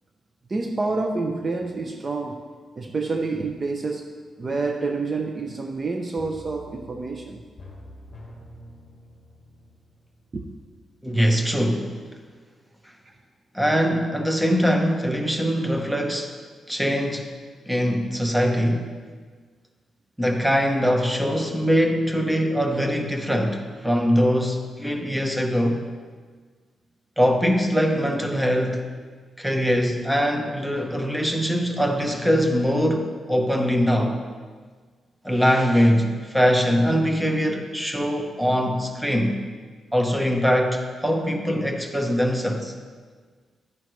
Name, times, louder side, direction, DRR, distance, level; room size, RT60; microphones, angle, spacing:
voice 1, 0.5-2.4 2.8-4.1 4.4-7.4 10.3-10.4 13.1-13.2, right 3 dB, 30° right, 3 dB, 0.5 m, -28 dB
sound 1, 6.2-10.9 11.2-11.3, left 1 dB, 25° left, 1.9 m, -46 dB
voice 2, 11.0-12.0 13.5-16.3 16.7-17.3 17.7-18.9 20.2-25.8 27.2-28.9 29.4-34.2 35.2-39.4 39.9-42.7, equal, 5° right, 3 dB, 0.9 m, -22 dB
11.0 x 9.4 x 3.1 m, 1.5 s
wide cardioid pair, 140°, 0 cm